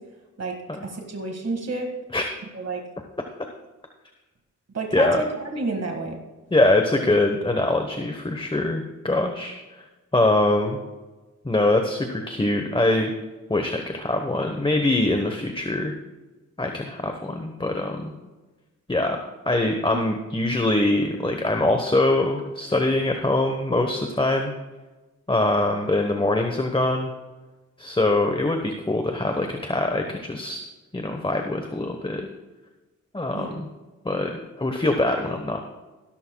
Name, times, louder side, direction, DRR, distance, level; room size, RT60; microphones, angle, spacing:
voice 1, 0.8-1.9 2.5-2.8 4.7-6.2 19.9-20.0 33.3-33.5, right 2 dB, 55° right, 2 dB, 1.9 m, -29 dB
voice 2, 6.5-9.5 10.1-10.8 11.4-13.1 13.5-15.9 16.6-18.1 18.9-24.5 25.3-27.1 27.8-30.6 30.9-32.3 33.1-33.7 34.0-34.3 34.6-35.6, left 2 dB, 15° left, 4 dB, 1.1 m, -23 dB
16.0 x 13.5 x 2.3 m, 1.2 s
cardioid pair, 65°, 31 cm